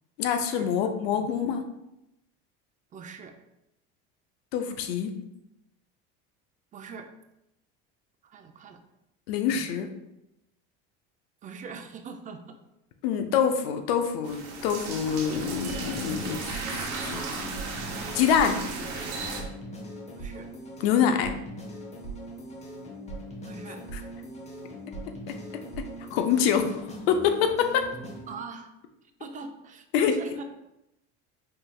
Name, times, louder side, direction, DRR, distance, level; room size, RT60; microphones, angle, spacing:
voice 1, 0.2-1.6 4.5-5.1 9.3-9.9 13.0-17.6 18.1-18.6 20.8-21.3 23.9-24.0 25.3-25.4 25.8-25.9 26.1-27.9 29.9-30.2, left 7 dB, 85° left, 7 dB, 0.6 m, -26 dB
voice 2, 2.9-3.3 6.7-7.1 8.2-8.8 9.5-9.8 11.4-12.6 20.2-20.5 23.4-23.8 28.3-28.7 29.2-30.4, right 4 dB, 25° right, 6 dB, 0.4 m, -42 dB
sound 1, 14.2-19.4, right 4 dB, 70° right, 0.8 m, -35 dB
sound 2, 15.5-28.4, right 1 dB, 25° left, 0.8 m, -40 dB
4.5 x 3.1 x 2.3 m, 0.87 s
supercardioid pair, 110°, 29 cm